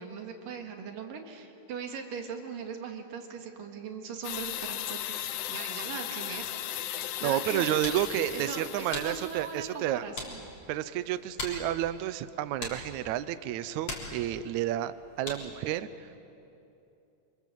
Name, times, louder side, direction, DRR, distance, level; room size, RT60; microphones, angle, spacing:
voice 1, 0.0-6.5 7.2-7.7 8.3-10.5, right 6 dB, 90° right, 4 dB, 3.6 m, -40 dB
sound 1, 4.2-9.6, left 12 dB, 75° left, 2.2 m, -36 dB
voice 2, 7.2-10.1 10.7-16.1, right 12 dB, 75° right, 13 dB, 1.9 m, -31 dB
sound 2, 7.4-15.7, left 2 dB, 45° left, 4.6 m, -43 dB
27.0 x 26.5 x 7.7 m, 2.8 s
omnidirectional pair, 3.8 m